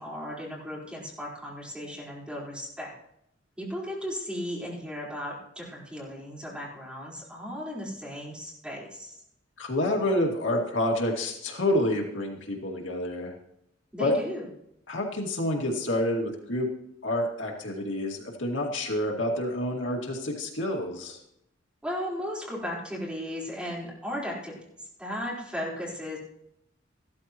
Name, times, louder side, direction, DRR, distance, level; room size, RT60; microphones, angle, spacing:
voice 1, 0.0-2.9 3.6-9.2 13.9-14.4 21.8-26.2, equal, 5° right, -6 dB, 4.2 m, -36 dB
voice 2, 9.6-13.3 14.0-14.2 14.9-16.7 17.0-21.2, left 1 dB, 75° left, 0 dB, 2.2 m, -28 dB
14.5 x 13.5 x 3.0 m, 0.80 s
head